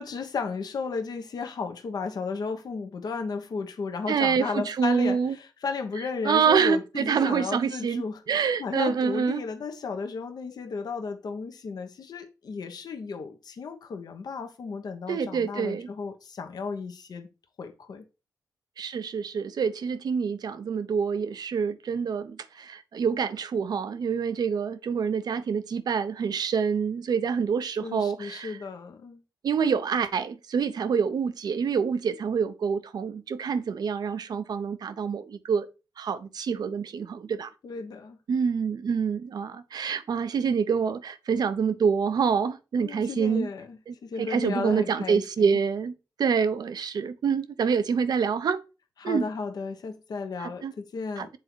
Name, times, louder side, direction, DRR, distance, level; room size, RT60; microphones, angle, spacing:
voice 1, 0.0-17.3 17.6-18.0 27.8-29.2 37.6-38.2 42.8-45.6 49.0-51.3, left 4 dB, 70° left, 1.0 m, -34 dB
voice 2, 4.1-5.4 6.2-9.4 15.1-15.9 18.8-28.6 29.4-35.7 36.0-37.5 38.3-43.5 43.9-45.9 46.2-48.6 49.0-49.3 50.4-50.7 51.2-51.3, right 6 dB, 75° right, 0.7 m, -26 dB
7.6 x 4.0 x 4.5 m
cardioid pair, 50°, 7 cm